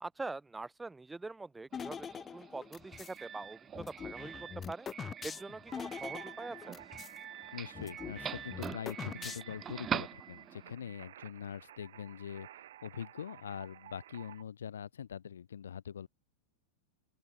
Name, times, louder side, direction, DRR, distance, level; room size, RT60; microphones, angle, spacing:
voice 1, 0.0-3.6 3.9-4.9 5.2-6.8, right 3 dB, 10° right, 0.5 m, -44 dB
sound 1, 1.7-3.2 3.7-7.2 7.4-7.5 7.7-9.7, left 7 dB, 20° left, 1.2 m, -44 dB
Doorbell, 1.7-10.7, right 8 dB, 25° right, 1.3 m, -44 dB
sound 2, 5.7-14.4, right 12 dB, 60° right, 3.7 m, -53 dB
voice 2, 7.5-16.1, left 8 dB, 65° left, 2.0 m, -43 dB
open air
figure-of-eight pair, 90°, 0 cm